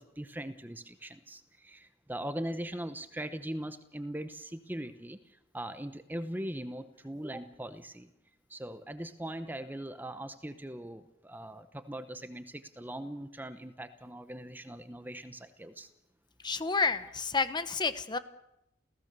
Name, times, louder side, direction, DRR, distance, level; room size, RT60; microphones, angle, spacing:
voice 1, 0.0-8.1 8.5-15.9, right 1 dB, 10° right, 10 dB, 0.9 m, -40 dB
voice 2, 16.4-18.2, left 4 dB, 25° left, 12 dB, 1.0 m, -30 dB
28.5 x 16.5 x 6.9 m, 0.86 s
head